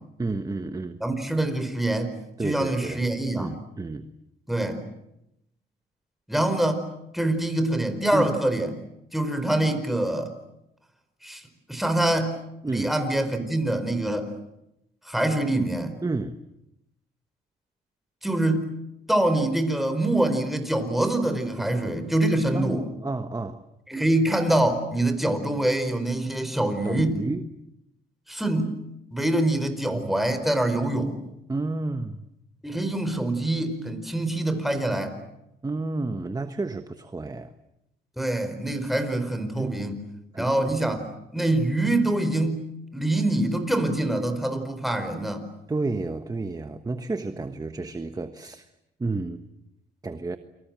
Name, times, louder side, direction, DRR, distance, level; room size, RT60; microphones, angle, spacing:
voice 1, 0.2-1.0 2.4-3.1 3.4-4.1 8.1-8.3 12.6-12.9 16.0-16.4 21.6-21.7 22.5-23.6 26.8-27.5 29.9-30.2 31.5-32.3 35.6-37.5 39.6-40.0 40.3-41.0 45.7-48.7 49.0-49.4 50.0-50.4, right 3 dB, 20° right, 10 dB, 1.4 m, -31 dB
voice 2, 1.0-2.2 2.4-3.6 4.5-4.8 6.3-6.9 7.1-8.7 9.1-10.3 11.2-12.4 12.7-14.3 15.0-16.0 18.2-18.7 19.1-22.8 23.9-27.2 28.3-28.8 29.1-31.1 32.6-35.2 38.2-40.0 40.4-41.1 41.3-45.5, right 1 dB, ahead, 8 dB, 4.8 m, -25 dB
29.5 x 24.5 x 7.7 m, 0.85 s
cardioid pair, 90°, 20 cm